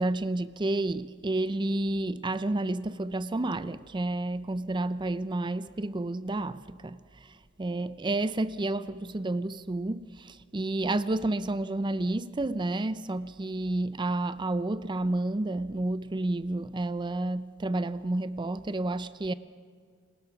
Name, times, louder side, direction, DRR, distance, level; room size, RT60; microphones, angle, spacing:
voice 1, 0.0-19.3, right 2 dB, 20° right, 0.5 m, -30 dB
29.5 x 20.0 x 5.8 m
head